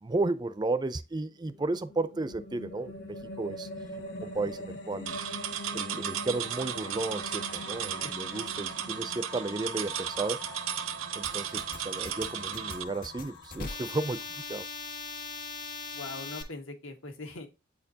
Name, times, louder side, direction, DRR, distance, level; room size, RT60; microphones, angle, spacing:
voice 1, 0.0-3.7 4.2-5.2 5.7-10.4 11.1-14.2 14.5-14.6, right 3 dB, 20° right, 0.4 m, -33 dB
sound 1, 1.3-14.7, left 2 dB, 60° left, 1.6 m, -44 dB
sound 2, 5.1-12.8, right 10 dB, 80° right, 0.6 m, -35 dB
sound 3, 11.2-16.4, left 3 dB, 45° left, 1.5 m, -40 dB
voice 2, 15.9-17.5, left 3 dB, 80° left, 1.7 m, -41 dB
8.4 x 4.4 x 2.8 m
head